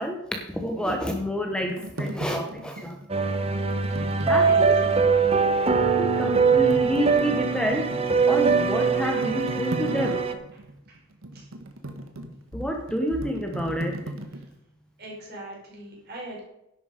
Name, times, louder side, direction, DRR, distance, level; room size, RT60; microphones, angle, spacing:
voice 1, 0.0-3.0 4.3-4.7 6.0-7.9 8.3-10.2 12.5-14.0, equal, 5° left, 3 dB, 1.0 m, -28 dB
sound 1, 1.3-4.9 5.4-5.5 6.0-14.5, right 1 dB, 85° right, 1.4 m, -38 dB
sound 2, 3.1-10.3, right 5 dB, 30° right, 0.9 m, -22 dB
voice 2, 4.4-5.0 10.5-10.6 10.9-11.0 11.3-11.5 15.0-16.5, right 1 dB, 50° right, -2 dB, 4.6 m, -41 dB
11.0 x 8.7 x 5.2 m, 0.84 s
head